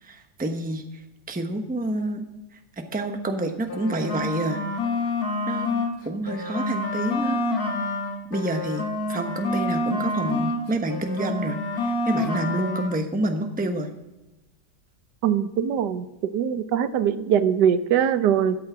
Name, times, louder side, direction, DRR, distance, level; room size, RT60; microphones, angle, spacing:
voice 1, 0.0-2.3 2.5-4.6 5.5-5.7 6.0-7.4 8.3-13.9, right 1 dB, 5° right, 5 dB, 0.8 m, -28 dB
sound 1, 3.6-6.0 6.3-10.6 10.9-12.9, left 2 dB, 60° left, 1.9 m, -27 dB
voice 2, 15.2-18.6, right 8 dB, 80° right, 12 dB, 1.3 m, -22 dB
13.0 x 8.6 x 6.0 m, 1.0 s
omnidirectional pair, 1.8 m